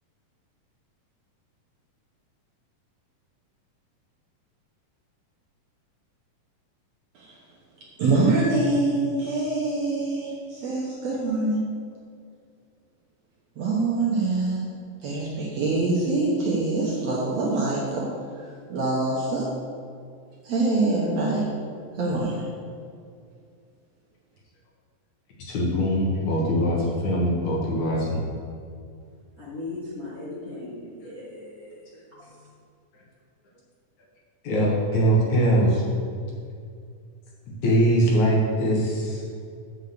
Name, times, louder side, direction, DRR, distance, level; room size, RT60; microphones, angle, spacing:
voice 1, 8.0-10.3 10.6-11.6 13.6-14.7 15.0-18.1 18.4-19.5 20.4-21.5 22.0-22.5, right 2 dB, 60° right, -4 dB, 1.9 m, -24 dB
voice 2, 25.4-28.2 34.4-35.8 37.6-39.2, right 1 dB, 60° left, -3 dB, 2.3 m, -22 dB
voice 3, 29.4-31.8 32.1-32.5, left 2 dB, 40° left, -9 dB, 1.3 m, -38 dB
8.1 x 5.6 x 6.7 m, 2.3 s
omnidirectional pair, 4.2 m